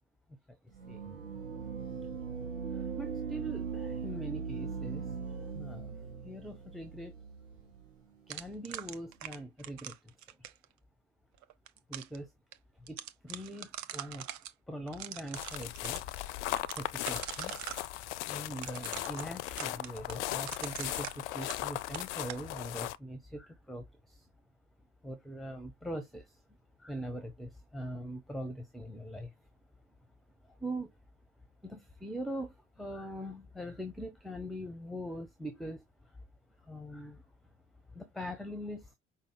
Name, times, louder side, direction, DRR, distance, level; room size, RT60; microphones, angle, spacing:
sound 1, 0.7-7.9, right 6 dB, 80° right, 0.9 m, -40 dB
voice 1, 2.7-5.9 6.2-7.1 8.3-10.1 11.9-12.3 12.9-13.0 13.2-14.3 14.7-16.0 16.7-17.6 18.3-24.3 25.0-26.4 26.8-29.3 30.6-30.9 31.6-36.2 36.6-37.2 37.9-39.0, equal, ahead, 0.8 m, -42 dB
sound 2, 8.3-10.7 11.4-12.2 12.5-12.6 12.9-14.5 14.9-16.0 16.6-17.9 18.6-21.7 21.9-22.4, right 12 dB, 50° right, 0.7 m, -43 dB
sound 3, 15.3-23.0, left 15 dB, 65° left, 0.5 m, -38 dB
5.3 x 2.2 x 3.5 m
figure-of-eight pair, 55°, 38 cm